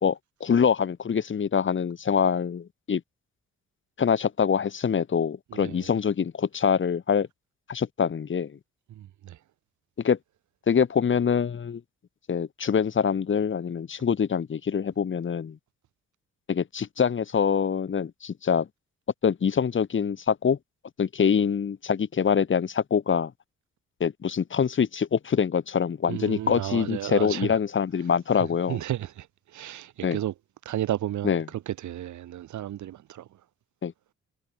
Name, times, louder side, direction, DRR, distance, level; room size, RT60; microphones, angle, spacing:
voice 1, 0.0-3.0 4.0-7.3 7.7-8.5 10.0-10.2 10.7-11.8 12.3-15.6 16.5-18.7 19.2-20.6 21.0-23.3 24.0-28.8 30.0-30.2 31.2-31.4 33.8-33.9, left 7 dB, 40° left, 1.8 m, -25 dB
voice 2, 5.5-5.9 8.9-9.4 26.1-27.6 28.3-30.3 30.6-33.4, right 12 dB, 80° right, 4.4 m, -33 dB
cardioid pair, 85°, 29 cm